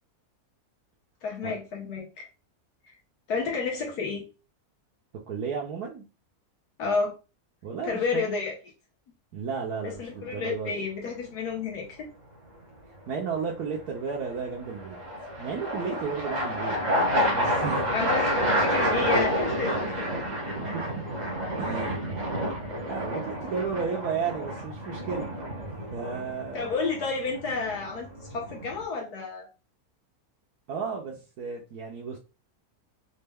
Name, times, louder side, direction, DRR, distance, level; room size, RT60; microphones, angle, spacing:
voice 1, 1.2-2.3 2.8-3.0 3.3-4.3 6.8-7.1 7.8-8.5 9.8-12.1 17.9-20.2 26.5-29.5, left 4 dB, 90° left, 1.6 m, -31 dB
voice 2, 5.3-6.0 7.6-8.2 9.3-10.7 13.1-15.0 15.4-16.8 17.3-17.9 20.5-20.8 21.6-22.3 22.9-25.4 25.9-26.7 30.7-32.2, right 6 dB, 75° right, 1.3 m, -33 dB
sound 1, 9.9-10.4 14.2-28.8, equal, 35° right, 1.0 m, -29 dB
4.2 x 2.2 x 3.4 m
omnidirectional pair, 1.6 m